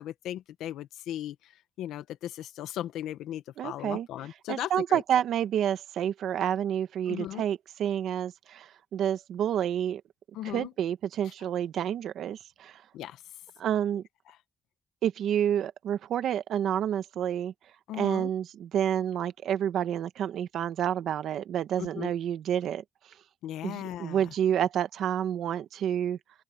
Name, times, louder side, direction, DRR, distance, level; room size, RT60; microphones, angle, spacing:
voice 1, 0.0-1.3 1.8-5.0 7.1-7.4 10.3-10.7 12.9-13.2 17.9-18.3 21.8-22.1 23.4-24.2, left 12 dB, 85° left, 1.2 m, -37 dB
voice 2, 3.6-4.1 4.5-10.0 10.4-12.8 13.6-14.0 15.0-17.5 17.9-23.1 23.6-26.2, right 10 dB, 75° right, 1.2 m, -29 dB
open air
cardioid pair, 90°, 0 cm